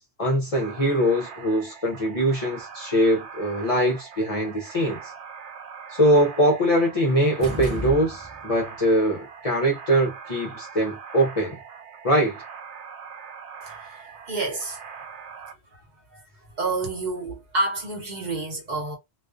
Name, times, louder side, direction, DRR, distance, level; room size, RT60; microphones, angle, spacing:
voice 1, 0.0-5.1 5.9-11.6 12.0-12.4, equal, 50° left, 0.4 m, -22 dB
sound 1, 0.5-15.5, right 6 dB, 85° right, 0.9 m, -42 dB
sound 2, 7.4-8.6, right 1 dB, 30° right, 0.5 m, -32 dB
voice 2, 13.6-14.8 15.4-15.8 16.1-19.0, right 2 dB, 45° right, 0.9 m, -30 dB
2.4 x 2.3 x 2.3 m
omnidirectional pair, 1.1 m